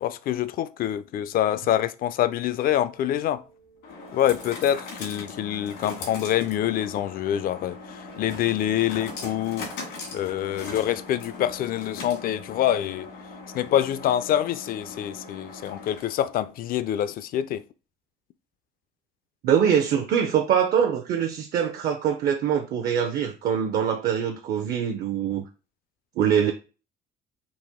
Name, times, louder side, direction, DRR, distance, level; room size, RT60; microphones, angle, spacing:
voice 1, 0.0-3.4 4.1-9.7 10.1-13.1 13.5-17.6, left 11 dB, 60° left, 0.4 m, -26 dB
sound 1, 2.4-16.4, left 3 dB, 85° left, 1.9 m, -40 dB
voice 2, 19.4-25.4 26.2-26.5, right 8 dB, 60° right, 0.6 m, -23 dB
4.2 x 2.6 x 3.6 m
cardioid pair, 110°, 17 cm